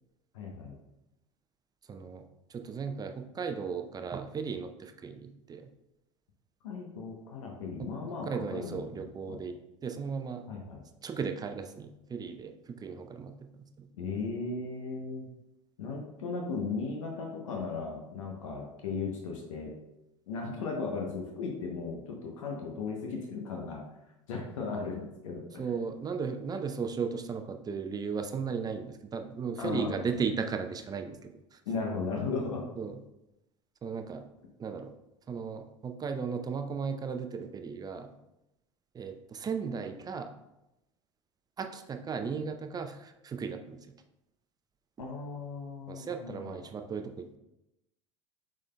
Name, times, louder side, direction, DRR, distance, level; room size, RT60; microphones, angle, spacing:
voice 1, 0.3-0.8 6.6-9.4 10.5-10.8 14.0-15.3 15.8-19.7 20.3-23.8 24.3-25.4 29.6-29.9 31.7-32.6 45.0-46.6, left 4 dB, 80° left, 0 dB, 0.8 m, -36 dB
voice 2, 1.9-2.2 2.5-5.7 8.2-9.6 9.8-10.4 11.0-13.9 25.6-31.6 32.8-33.0 33.8-34.2 34.6-34.9 35.3-38.1 38.9-40.3 41.6-43.9 45.9-47.4, right 5 dB, 25° right, 6 dB, 0.5 m, -36 dB
6.1 x 3.8 x 2.2 m, 0.90 s
hypercardioid pair, 80°, 17 cm